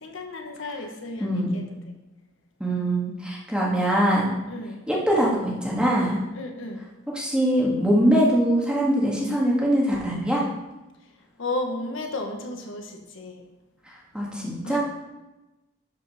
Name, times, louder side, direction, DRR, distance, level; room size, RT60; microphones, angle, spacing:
voice 1, 0.0-1.6 4.5-4.8 6.3-6.8 11.4-13.4 14.6-14.8, left 2 dB, 80° left, 3 dB, 1.4 m, -33 dB
voice 2, 1.2-1.6 2.6-4.3 4.9-6.2 7.1-10.4 14.1-14.8, equal, 5° right, -4 dB, 2.2 m, -22 dB
12.0 x 5.7 x 5.1 m, 1.0 s
head